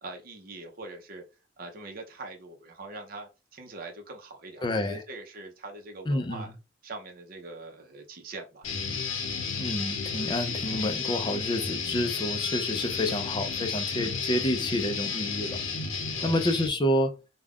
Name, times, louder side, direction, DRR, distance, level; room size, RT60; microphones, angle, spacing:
voice 1, 0.0-1.2 1.6-6.5 6.8-8.7 16.1-16.4, right 2 dB, 50° right, 0.6 m, -43 dB
voice 2, 4.6-5.0 6.1-6.5 9.6-15.6 16.2-17.1, left 1 dB, 25° left, 0.4 m, -29 dB
Guitar, 8.6-16.7, left 5 dB, 85° left, 0.7 m, -32 dB
2.4 x 2.2 x 3.4 m
head